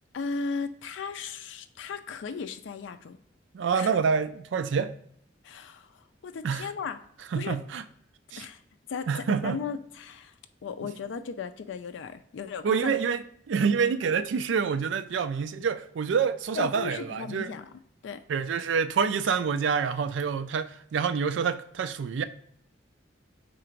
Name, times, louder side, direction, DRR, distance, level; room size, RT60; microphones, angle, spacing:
voice 1, 0.1-3.2 3.7-3.9 5.4-7.1 7.4-7.6 8.4-8.6 8.9-10.3 10.6-13.0 16.5-17.7 18.0-18.2, left 5 dB, 75° left, 0.4 m, -36 dB
voice 2, 3.5-4.9 6.4-6.7 7.3-7.8 8.3-8.5 9.1-9.6 10.8-10.9 12.6-17.5 18.3-22.2, right 6 dB, 75° right, 0.4 m, -27 dB
3.8 x 2.5 x 4.5 m
head